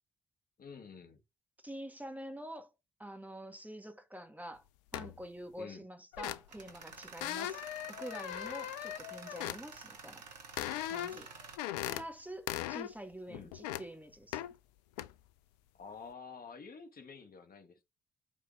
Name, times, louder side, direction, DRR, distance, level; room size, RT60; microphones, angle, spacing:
voice 1, 0.6-1.2 5.6-5.8 13.3-13.5 15.7-17.8, left 5 dB, 45° left, 1.4 m, -49 dB
voice 2, 1.6-2.7 3.0-4.6 4.9-10.2 10.9-11.3 11.8-14.4, right 1 dB, 5° right, 1.7 m, -46 dB
sound 1, 4.9-5.2 6.1-6.7 7.2-9.6 10.6-11.3 11.6-12.0 12.5-12.9 13.3-13.8 14.3-14.5 15.0-15.1, left 13 dB, 80° left, 0.5 m, -39 dB
Tools, 6.5-11.6, right 5 dB, 90° right, 0.9 m, -50 dB
6.2 x 4.2 x 5.5 m
figure-of-eight pair, 40°, 21 cm